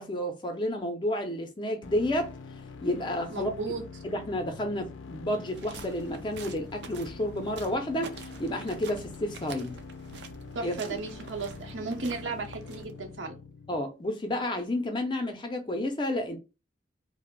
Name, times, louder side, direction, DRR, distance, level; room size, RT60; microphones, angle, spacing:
voice 1, 0.0-2.3 2.8-3.5 4.0-9.8 10.6-11.0 13.7-16.4, left 1 dB, 25° left, 0.4 m, -31 dB
sound 1, 1.8-13.8, left 4 dB, 85° left, 0.4 m, -45 dB
voice 2, 3.3-3.8 10.5-13.4, right 3 dB, 85° right, 0.7 m, -35 dB
sound 2, 5.4-13.1, right 5 dB, 60° right, 0.4 m, -47 dB
2.5 x 2.0 x 3.6 m
head